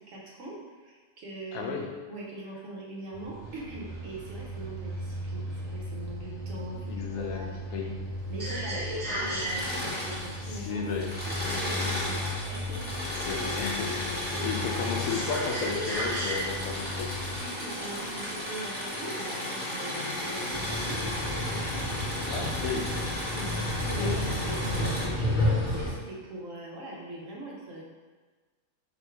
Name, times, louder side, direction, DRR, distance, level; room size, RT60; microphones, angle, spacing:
voice 1, 0.1-7.9 8.3-10.8 11.3-13.3 14.4-14.7 17.4-21.8 23.4-27.8, right 2 dB, 70° right, -3 dB, 1.3 m, -42 dB
voice 2, 1.5-1.9 6.9-8.1 10.4-11.2 13.1-17.1 22.3-23.1 24.0-24.2, left 5 dB, 80° left, 1 dB, 1.0 m, -34 dB
sound 1, 3.1-17.4, equal, 30° right, 1.1 m, -35 dB
Engine / Mechanisms, 9.3-10.6 10.9-25.1, left 1 dB, 10° right, 1.0 m, -34 dB
sound 2, 20.5-25.9, left 1 dB, 40° left, 1.1 m, -30 dB
3.8 x 2.6 x 4.5 m, 1.4 s
omnidirectional pair, 1.4 m